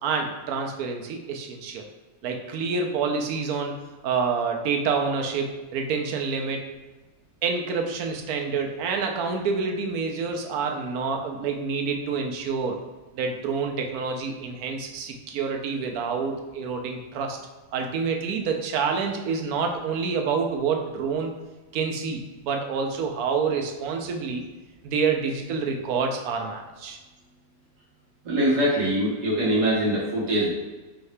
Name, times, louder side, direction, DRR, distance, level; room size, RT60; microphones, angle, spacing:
voice 1, 0.0-1.8 2.2-3.8 4.0-6.6 7.4-12.8 13.1-17.4 17.7-21.3 21.7-24.4 24.8-27.0, right 5 dB, 90° right, 2 dB, 1.1 m, -27 dB
voice 2, 28.3-30.5, right 1 dB, 60° right, -6 dB, 1.7 m, -23 dB
4.7 x 2.7 x 3.3 m, 1.2 s
omnidirectional pair, 1.5 m